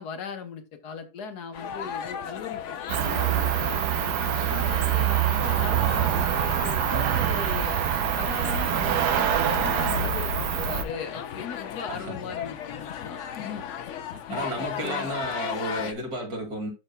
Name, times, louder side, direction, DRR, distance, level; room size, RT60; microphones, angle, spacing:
voice 1, 0.0-3.8 4.5-7.7 8.2-13.6 14.1-15.1, left 6 dB, 80° left, 1.6 m, -38 dB
sound 1, 1.5-15.9, left 8 dB, 60° left, 0.9 m, -36 dB
Cricket, 2.9-10.8, right 9 dB, 85° right, 1.3 m, -25 dB
voice 2, 14.3-16.7, right 1 dB, 70° right, 2.9 m, -33 dB
12.5 x 4.4 x 2.2 m
omnidirectional pair, 1.7 m